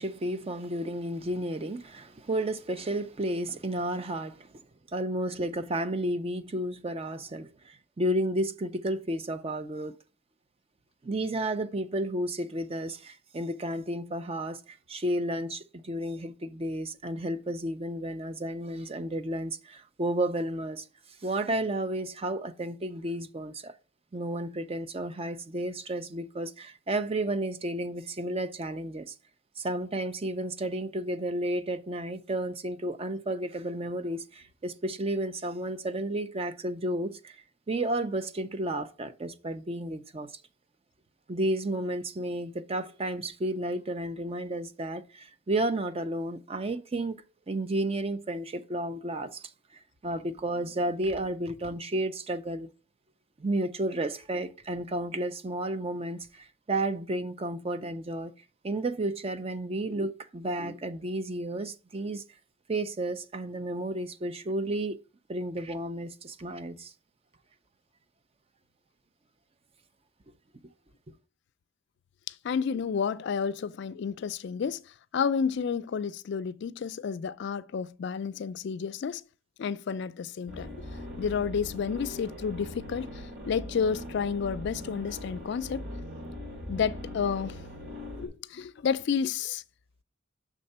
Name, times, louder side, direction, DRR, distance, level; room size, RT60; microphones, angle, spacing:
voice 1, 0.0-4.5 4.9-9.9 11.0-20.9 21.2-23.7 24.1-29.1 29.6-37.4 37.7-40.3 41.3-47.2 47.5-49.5 50.0-52.7 53.4-58.3 58.6-62.2 62.7-65.0 65.3-66.9, right 1 dB, 30° right, 0.5 m, -32 dB
voice 2, 72.4-74.8 75.1-79.2 79.6-80.7 81.2-83.1 83.5-85.9 86.7-87.6 88.2-89.6, left 6 dB, 60° left, 0.3 m, -30 dB
sound 1, 80.5-88.3, left 1 dB, 55° right, 2.3 m, -41 dB
6.7 x 3.6 x 5.4 m
head